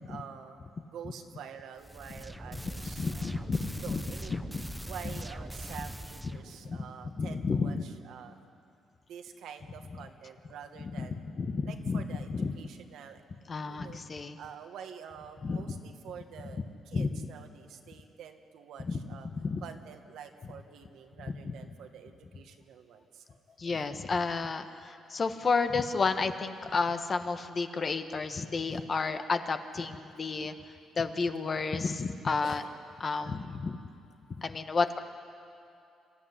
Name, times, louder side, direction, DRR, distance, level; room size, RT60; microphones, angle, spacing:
voice 1, 0.1-0.6 0.9-3.5 3.8-4.3 4.9-8.4 9.1-11.2 11.6-13.2 13.6-14.0 14.4-19.3 19.6-23.4 25.1-25.2 32.4-32.7, right 8 dB, 80° right, 5 dB, 1.7 m, -47 dB
sound 1, 1.8-6.7, right 1 dB, 5° right, 0.9 m, -41 dB
voice 2, 3.0-4.0 4.3-4.6 6.3-6.8 7.1-7.8 10.8-12.5 13.5-14.4 15.4-15.8 16.9-17.1 18.9-19.0 19.3-19.6 21.4-21.5 23.6-30.5 31.0-32.6 33.0-33.8 34.4-35.0, left 4 dB, 40° left, 8 dB, 1.4 m, -31 dB
26.0 x 14.0 x 10.0 m, 2.6 s
cardioid pair, 90°, 0 cm